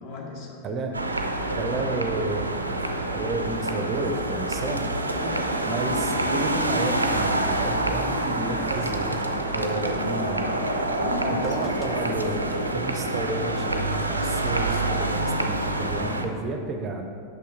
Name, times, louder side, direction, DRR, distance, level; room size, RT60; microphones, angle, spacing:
voice 1, 0.0-0.6 5.2-5.5 10.9-11.9 15.3-15.6, left 2 dB, 45° left, -1 dB, 1.2 m, -37 dB
voice 2, 0.6-1.0 1.4-2.5 3.1-4.9 5.6-9.2 9.5-10.5 11.3-17.1, right 2 dB, 30° right, 4 dB, 0.5 m, -31 dB
sound 1, 0.9-16.2, right 1 dB, 80° right, 0.4 m, -27 dB
sound 2, 5.5-12.2, left 4 dB, 25° left, 0.5 m, -44 dB
6.4 x 5.6 x 3.9 m, 2.4 s
figure-of-eight pair, 90°, 0 cm